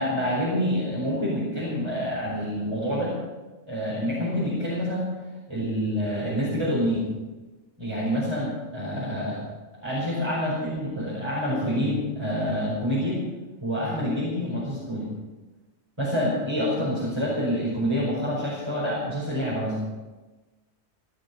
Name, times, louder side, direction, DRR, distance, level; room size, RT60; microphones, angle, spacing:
voice 1, 0.0-3.1 3.7-5.0 5.5-7.1 7.8-9.4 9.8-13.2 13.6-15.1 16.0-19.8, equal, 20° right, -8 dB, 5.1 m, -27 dB
17.0 x 12.0 x 5.9 m, 1.2 s
omnidirectional pair, 1.3 m